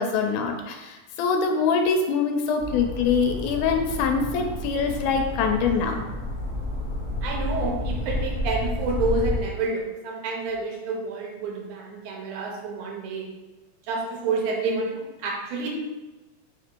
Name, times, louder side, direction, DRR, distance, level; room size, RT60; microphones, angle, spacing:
voice 1, 0.0-6.0, left 5 dB, 90° left, 3 dB, 2.1 m, -24 dB
sound 1, 2.6-9.4, left 1 dB, 45° left, 1.0 m, -30 dB
voice 2, 7.2-13.3 13.9-15.7, right 3 dB, 80° right, -1 dB, 2.2 m, -29 dB
4.9 x 2.5 x 4.4 m, 1.1 s
omnidirectional pair, 3.5 m